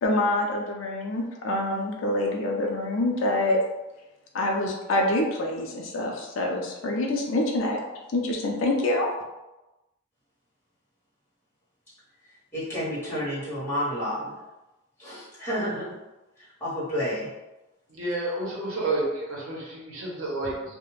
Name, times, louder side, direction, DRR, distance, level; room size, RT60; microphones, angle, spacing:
voice 1, 0.0-3.6 4.3-7.8 8.1-9.1, left 1 dB, 60° left, 0 dB, 0.4 m, -26 dB
voice 2, 12.5-14.3 15.0-15.9 16.6-17.3, equal, 10° left, -10 dB, 1.1 m, -30 dB
voice 3, 17.9-20.7, right 2 dB, 75° right, -4 dB, 0.8 m, -30 dB
2.3 x 2.1 x 3.1 m, 1.0 s
head